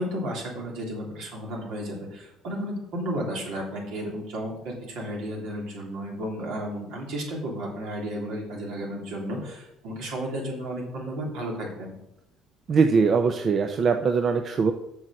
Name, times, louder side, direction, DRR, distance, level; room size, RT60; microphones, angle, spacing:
voice 1, 0.0-12.0, equal, 80° right, -2 dB, 3.3 m, -33 dB
voice 2, 12.7-14.7, right 5 dB, 45° right, 6 dB, 0.7 m, -21 dB
7.1 x 6.4 x 6.5 m, 0.86 s
supercardioid pair, 85°, 0 cm